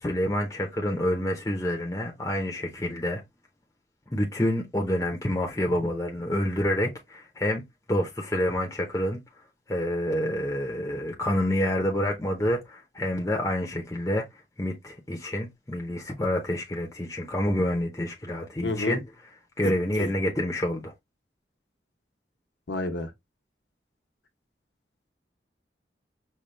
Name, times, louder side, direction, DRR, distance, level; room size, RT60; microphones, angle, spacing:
voice 1, 0.0-3.2 4.1-7.6 7.9-9.2 9.7-14.2 14.6-19.0 19.6-20.9, left 1 dB, 15° left, 0.6 m, -28 dB
voice 2, 18.6-19.0 19.6-19.7 20.0-20.1 22.7-23.1, left 2 dB, 85° left, 0.9 m, -29 dB
5.3 x 2.2 x 3.1 m
head